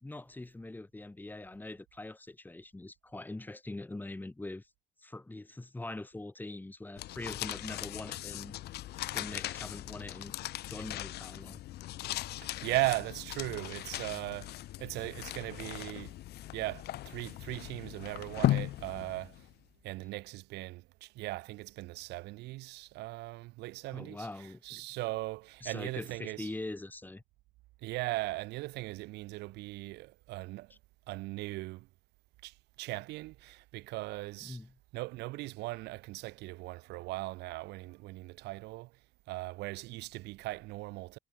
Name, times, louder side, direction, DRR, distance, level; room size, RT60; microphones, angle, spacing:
voice 1, 0.0-4.7 5.0-8.5 9.1-10.3 10.7-11.6 20.0-20.1 23.9-24.9 25.6-27.2 30.7-30.8 34.4-34.8, left 2 dB, 10° left, 2.6 m, -43 dB
sound 1, 7.0-19.5, left 15 dB, 70° left, 1.7 m, -38 dB
voice 2, 12.4-16.1 16.5-19.4 19.8-24.3 24.6-26.5 27.8-30.7 31.1-31.9 32.4-34.6 34.9-38.9 39.3-41.2, right 20 dB, 85° right, 0.7 m, -38 dB
cardioid pair, 110°, 17 cm